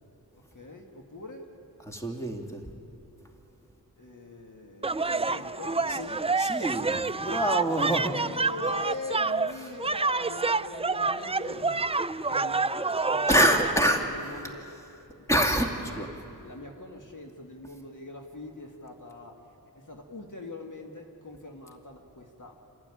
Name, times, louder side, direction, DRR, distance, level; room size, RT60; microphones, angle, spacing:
voice 1, 0.5-1.5 4.0-6.2 7.6-13.5 14.0-14.7 16.4-19.4 19.8-22.7, left 2 dB, 55° left, 2 dB, 2.2 m, -42 dB
voice 2, 1.9-2.6 5.9-6.0 6.4-8.1 9.7-9.8 13.3-14.0 15.3-16.1, equal, 10° left, 1 dB, 2.5 m, -26 dB
sound 1, 4.8-13.7, right 3 dB, 15° right, 0.4 m, -28 dB
28.0 x 12.0 x 10.0 m, 2.8 s
cardioid pair, 45°, 38 cm